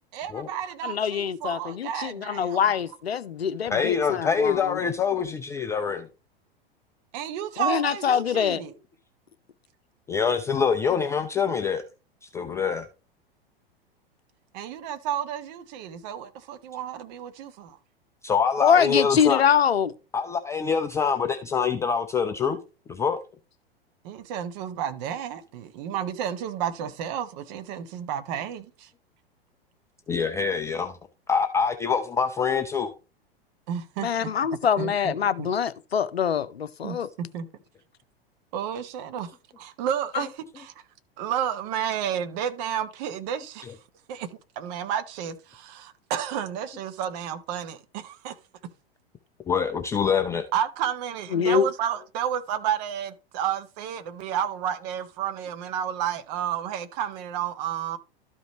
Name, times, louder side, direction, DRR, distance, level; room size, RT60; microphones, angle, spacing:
voice 1, 0.1-2.8 7.1-8.7 14.5-17.8 24.0-28.9 33.7-34.3 34.8-35.5 36.8-37.5 38.5-39.3 39.6-40.7 41.2-43.7 44.1-44.3 44.6-48.4 50.5-58.0, right 9 dB, 45° right, 1.0 m, -31 dB
voice 2, 0.8-4.8 7.6-8.6 18.6-19.9 34.0-37.1 40.1-40.2 51.3-51.7, left 8 dB, 80° left, 0.6 m, -24 dB
voice 3, 3.7-6.1 10.1-11.8 12.2-12.9 18.2-19.4 20.1-22.6 22.9-23.2 30.1-31.0 31.3-32.9 43.6-43.7 49.5-50.4, left 6 dB, 10° left, 0.3 m, -25 dB
12.5 x 5.0 x 3.0 m
figure-of-eight pair, 95°, 30 cm